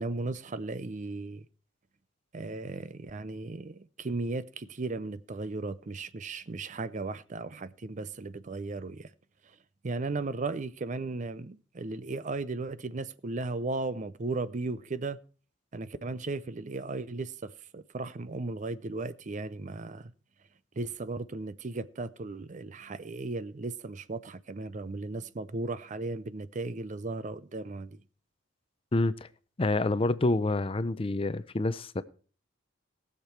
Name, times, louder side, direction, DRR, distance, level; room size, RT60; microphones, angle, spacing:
voice 1, 0.0-1.5 2.3-9.1 9.4-9.6 9.8-15.2 15.7-20.1 20.7-28.0, right 3 dB, 40° right, 0.5 m, -36 dB
voice 2, 28.9-29.3 29.6-32.0, left 2 dB, 30° left, 0.5 m, -27 dB
19.0 x 6.7 x 4.6 m
head